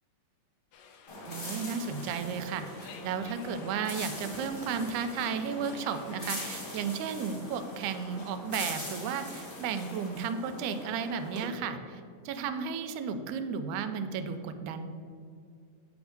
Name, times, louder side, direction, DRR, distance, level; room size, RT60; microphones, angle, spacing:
sound 1, 0.7-10.2, left 6 dB, 80° left, 1.4 m, -54 dB
sound 2, 1.1-11.4, left 1 dB, 20° left, 1.5 m, -42 dB
voice 1, 1.3-14.9, right 6 dB, 85° right, 9 dB, 2.1 m, -34 dB
8.5 x 3.5 x 6.4 m, 2.4 s
omnidirectional pair, 3.5 m